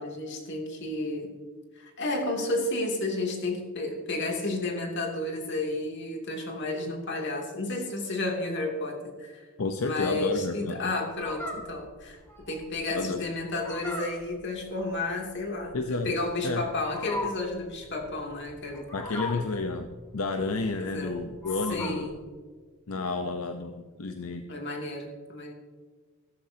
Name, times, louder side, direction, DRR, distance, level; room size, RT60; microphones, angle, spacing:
voice 1, 0.0-1.3 1.8-9.5 9.8-12.2 12.5-18.8 19.1-19.6 20.8-21.2 21.7-22.2 24.5-25.5, left 2 dB, 55° left, 1 dB, 2.8 m, -32 dB
voice 2, 9.6-10.9 11.6-11.7 12.9-13.3 15.7-16.6 18.9-22.1 22.9-24.5, left 3 dB, 80° left, 6 dB, 0.8 m, -31 dB
Fowl, 11.1-22.2, left 2 dB, 10° left, 2.5 m, -40 dB
16.0 x 13.5 x 2.8 m, 1.5 s
head